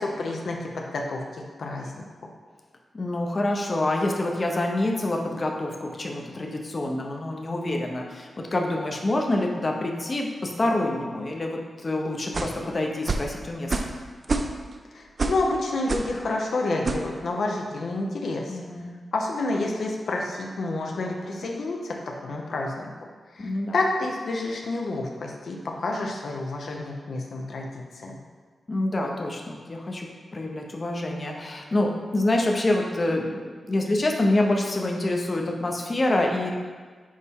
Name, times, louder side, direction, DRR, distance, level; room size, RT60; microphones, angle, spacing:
voice 1, 0.0-2.0 14.9-18.6 19.1-22.9 23.3-28.2, left 2 dB, 75° left, 0 dB, 0.6 m, -29 dB
voice 2, 2.9-13.9 18.5-19.0 23.4-23.7 28.7-30.1 30.3-36.5, left 1 dB, 35° left, 1 dB, 0.7 m, -26 dB
sound 1, 12.3-12.6 13.1-13.3 13.7-14.0 14.2-14.7 15.2-15.4 15.9-16.1 16.8-17.1, right 3 dB, 45° right, 0.4 m, -27 dB
6.4 x 4.1 x 3.6 m, 1.5 s
wide cardioid pair, 95°, 0 cm